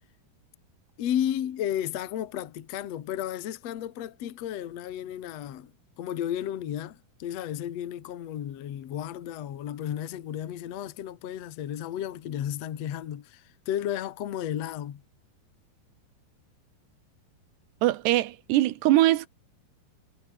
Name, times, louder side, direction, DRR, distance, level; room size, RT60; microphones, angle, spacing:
voice 1, 1.0-5.7 6.0-15.0, left 10 dB, 55° left, 2.0 m, -33 dB
voice 2, 17.8-19.3, right 15 dB, 80° right, 3.2 m, -22 dB
omnidirectional pair, 4.9 m